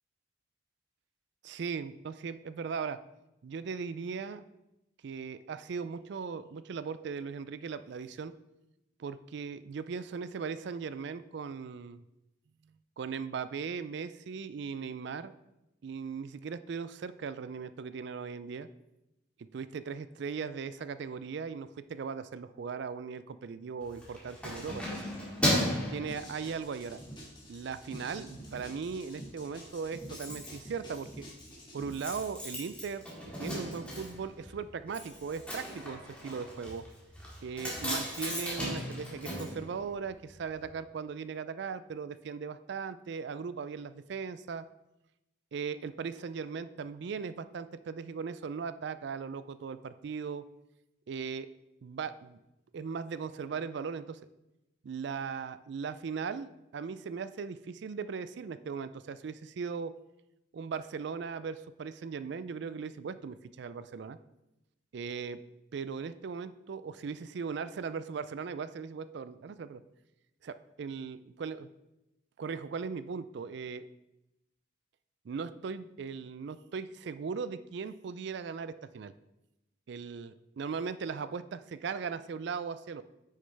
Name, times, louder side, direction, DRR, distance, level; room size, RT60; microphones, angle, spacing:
voice 1, 1.4-3.0 3.4-4.4 5.0-8.3 9.0-12.0 13.0-15.3 15.8-18.7 19.5-25.0 25.9-27.0 27.5-31.3 31.7-33.1 33.4-36.8 37.4-44.7 45.5-50.4 51.1-51.5 51.8-52.4 52.7-54.2 54.8-59.9 60.5-64.2 64.9-65.4 65.7-69.8 70.4-71.7 72.4-73.8 75.2-79.1 79.9-83.0, right 5 dB, 60° right, 14 dB, 0.4 m, -38 dB
Keys jangling, 23.8-26.9 27.4-27.6 27.9-28.6 28.9-29.0 29.2-29.3 29.5-40.4 40.6-40.7, equal, 5° left, 2.0 m, -36 dB
sound 1, 26.1-31.9, right 1 dB, 25° left, 1.7 m, -48 dB
9.3 x 6.4 x 3.4 m, 0.92 s
head